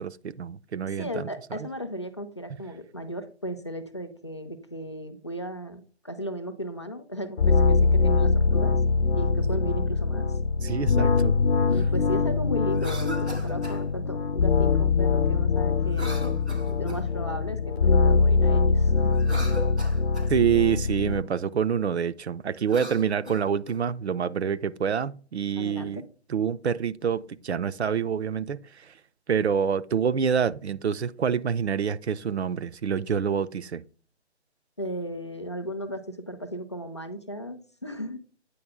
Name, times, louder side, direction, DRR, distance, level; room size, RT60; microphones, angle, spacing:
voice 1, 0.0-1.3 10.6-11.3 20.3-26.0 26.3-28.6 29.3-33.8, right 7 dB, 70° right, 0.5 m, -26 dB
voice 2, 0.8-8.7 9.1-10.3 11.7-16.4 16.8-19.3 25.6-26.1 34.8-38.2, equal, 25° left, 0.4 m, -36 dB
sound 1, 7.4-21.2, left 4 dB, 65° left, 0.7 m, -23 dB
Cough, 12.7-13.8 15.9-17.2 19.1-20.3 22.6-23.8, equal, 90° right, 2.7 m, -38 dB
8.5 x 4.1 x 3.6 m
figure-of-eight pair, 150°, 34 cm